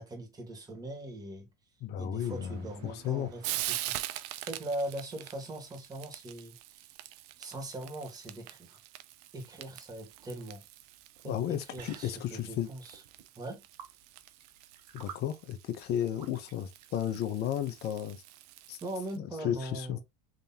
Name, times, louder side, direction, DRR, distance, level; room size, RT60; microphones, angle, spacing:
voice 1, 0.0-1.5 2.0-6.8 7.4-8.8 9.3-10.6 11.2-13.0 13.4-13.6 18.8-20.0, right 1 dB, 20° right, 2.1 m, -41 dB
voice 2, 1.8-3.3 11.3-12.7 14.9-18.2 18.7-18.8 19.2-20.0, left 10 dB, 55° left, 0.9 m, -34 dB
Frying (food), 2.2-19.2, right 15 dB, 70° right, 0.5 m, -44 dB
sound 1, 10.1-17.9, right 8 dB, 90° right, 0.9 m, -53 dB
3.9 x 3.4 x 2.9 m
hypercardioid pair, 90°, 20 cm